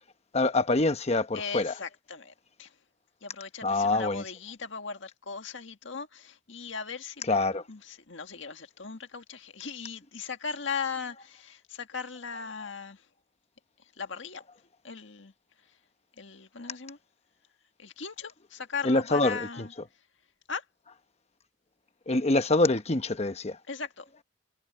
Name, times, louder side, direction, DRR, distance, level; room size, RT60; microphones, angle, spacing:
voice 1, 0.3-1.7 3.6-4.2 7.3-7.6 18.8-19.4 22.1-23.6, left 2 dB, 35° left, 1.0 m, -25 dB
voice 2, 1.3-2.3 2.6-2.7 3.2-7.3 7.7-13.0 14.0-14.4 14.8-15.3 16.2-17.0 17.8-19.7 20.5-20.6 23.7-24.1, left 5 dB, 65° left, 1.8 m, -38 dB
head